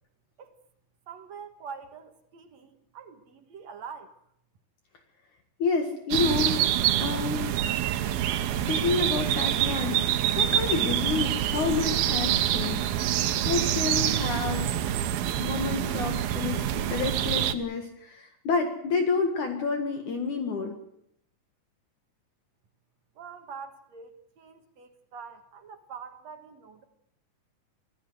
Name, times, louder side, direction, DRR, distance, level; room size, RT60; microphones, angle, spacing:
voice 1, 1.1-4.2 23.2-26.8, right 6 dB, 55° right, 7 dB, 2.4 m, -44 dB
voice 2, 5.6-6.7 7.0-7.5 8.7-12.9 13.2-14.7 15.4-20.7, left 5 dB, 60° left, 5 dB, 3.2 m, -29 dB
sound 1, 6.1-17.5, right 11 dB, 80° right, 2.9 m, -26 dB
25.5 x 15.5 x 8.1 m, 0.74 s
omnidirectional pair, 4.2 m